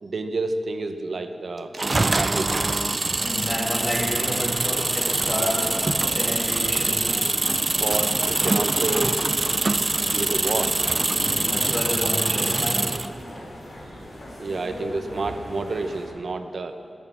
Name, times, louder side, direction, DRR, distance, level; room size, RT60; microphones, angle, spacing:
voice 1, 0.0-1.8 2.0-2.7 7.8-9.2 10.1-10.8 14.0-14.1 14.4-16.8, right 3 dB, 55° right, 8 dB, 0.8 m, -29 dB
sound 1, 1.7-13.1, right 2 dB, 30° right, 0.3 m, -24 dB
sound 2, 3.1-16.1, equal, 55° left, 4.0 m, -38 dB
voice 2, 3.2-5.7 6.0-7.1 11.2-13.0, left 1 dB, 40° left, -4 dB, 1.9 m, -30 dB
21.5 x 8.5 x 7.5 m, 2.6 s
wide cardioid pair, 125°, 0 cm